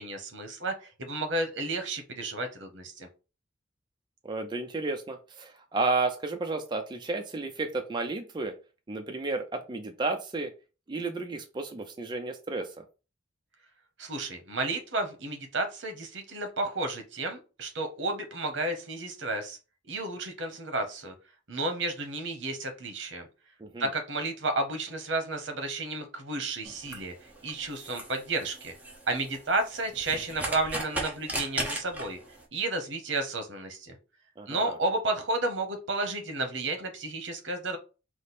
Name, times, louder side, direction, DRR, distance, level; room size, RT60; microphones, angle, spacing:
voice 1, 0.0-3.1 14.0-19.6 19.9-21.1 21.5-23.3 23.8-27.1 27.4-28.7 29.1-32.2 32.5-34.0 34.5-37.8, right 2 dB, 75° right, 7 dB, 1.0 m, -32 dB
voice 2, 4.2-8.5 8.9-10.5 10.9-12.8 23.6-23.9 34.4-34.8, right 3 dB, 25° right, 4 dB, 0.5 m, -32 dB
sound 1, 26.6-32.4, right 1 dB, 10° right, 0.9 m, -37 dB
4.9 x 2.1 x 4.1 m, 0.32 s
head